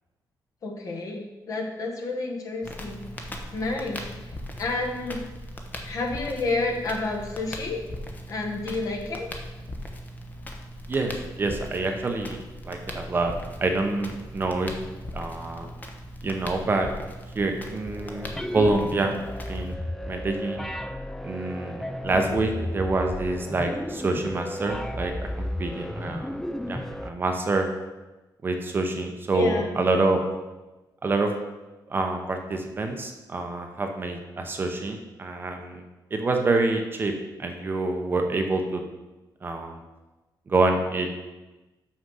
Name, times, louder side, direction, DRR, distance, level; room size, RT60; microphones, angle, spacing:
voice 1, 0.6-3.0 3.5-4.0 4.6-5.2 5.8-7.8 8.3-9.3 22.1-22.5 29.3-29.7, left 3 dB, 50° left, 1 dB, 1.4 m, -30 dB
Crackle, 2.6-19.7, left 1 dB, 25° left, 0.9 m, -39 dB
voice 2, 10.9-13.3 13.6-14.7 15.1-15.7 16.2-16.9 17.3-18.3 18.5-19.1 19.5-19.7 20.0-20.6 21.2-25.1 25.4-26.4 26.7-27.7 28.4-30.2 31.0-31.3 31.9-35.8 36.1-37.1 37.4-38.8 39.4-39.8 40.5-41.2, right 2 dB, 25° right, 4 dB, 0.8 m, -26 dB
sound 1, 17.9-27.1, left 1 dB, 5° left, 0.3 m, -33 dB
6.4 x 6.2 x 5.5 m, 1.1 s
wide cardioid pair, 165°, 8 cm